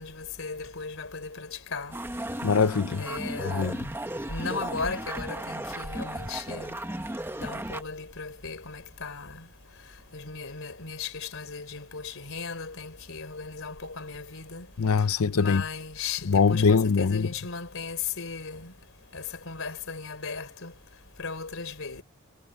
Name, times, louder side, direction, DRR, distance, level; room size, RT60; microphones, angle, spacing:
voice 1, 0.0-1.9 3.0-3.8 4.3-6.8 7.4-9.4 10.1-14.7 15.3-18.7 19.1-20.7 21.2-22.0, left 5 dB, 60° left, 3.9 m, -36 dB
sound 1, 1.9-7.8, right 1 dB, 10° right, 1.3 m, -35 dB
voice 2, 2.4-3.0 3.4-3.8 14.8-15.6 16.3-17.3, left 5 dB, 80° left, 0.6 m, -22 dB
head